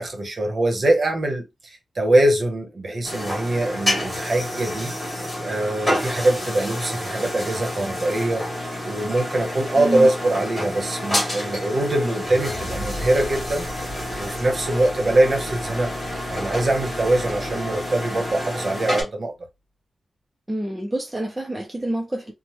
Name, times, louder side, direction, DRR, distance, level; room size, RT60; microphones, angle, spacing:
voice 1, 0.0-4.9 5.4-8.5 8.8-13.7 14.2-15.9 16.3-19.3, right 1 dB, 40° right, 0.8 m, -23 dB
sound 1, 3.0-19.0, equal, 15° left, 1.4 m, -29 dB
voice 2, 9.7-10.1 20.5-22.3, right 1 dB, 10° right, 0.4 m, -27 dB
sound 2, 12.3-18.4, equal, 35° left, 1.4 m, -38 dB
3.0 x 2.0 x 2.8 m
wide cardioid pair, 175°, 0 cm